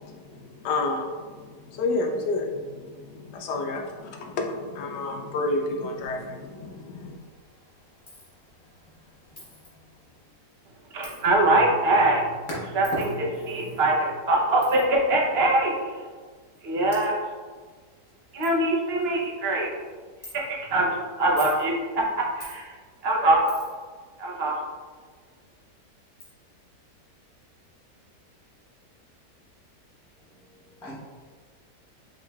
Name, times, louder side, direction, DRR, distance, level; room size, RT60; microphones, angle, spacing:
voice 1, 0.0-7.2, left 2 dB, 80° left, 2 dB, 1.2 m, -30 dB
sound 1, 5.2-13.9, equal, 50° left, 1.3 m, -43 dB
Coin (dropping), 8.1-8.3 9.4-9.7 11.0-11.2 12.8-13.1 14.6-14.8 15.8-15.9 16.5-16.6 16.9-17.1 17.7-17.8 18.1-18.2 18.4-18.6 19.0-19.3 20.2-20.4 21.2-21.6 22.4-22.6 23.5-23.8 25.5-25.6 26.2-26.3, left 2 dB, 25° left, 1.0 m, -44 dB
voice 2, 10.9-16.0 16.6-17.2 18.3-19.7 20.3-22.7 23.0-23.6 24.2-24.6, right 2 dB, 50° right, -1 dB, 0.7 m, -23 dB
voice 3, 30.3-31.0, equal, 5° left, -7 dB, 0.5 m, -45 dB
6.4 x 3.1 x 2.3 m, 1.5 s
omnidirectional pair, 1.8 m